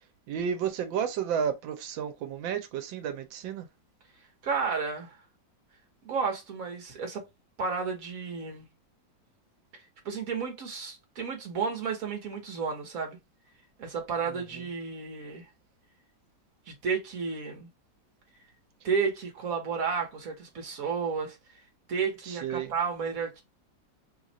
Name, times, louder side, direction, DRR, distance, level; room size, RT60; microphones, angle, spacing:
voice 1, 0.3-3.7 22.3-22.7, right 8 dB, 85° right, 1.5 m, -32 dB
voice 2, 4.4-5.1 6.0-7.2 7.6-8.7 10.0-13.2 13.8-15.5 16.7-17.7 18.8-21.4 21.9-23.4, right 5 dB, 50° right, 1.5 m, -32 dB
3.4 x 2.4 x 4.0 m
omnidirectional pair, 2.0 m